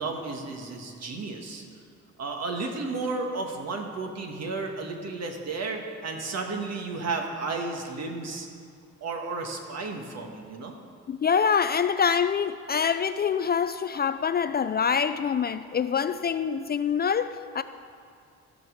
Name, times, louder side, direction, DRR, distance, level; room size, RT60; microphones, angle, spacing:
voice 1, 0.0-1.6 2.2-8.5 9.0-10.7, right 3 dB, 60° right, 3 dB, 1.7 m, -33 dB
voice 2, 11.1-17.6, left 7 dB, 35° left, 11 dB, 0.4 m, -25 dB
15.0 x 5.4 x 6.4 m, 2.3 s
cardioid pair, 90°, 30 cm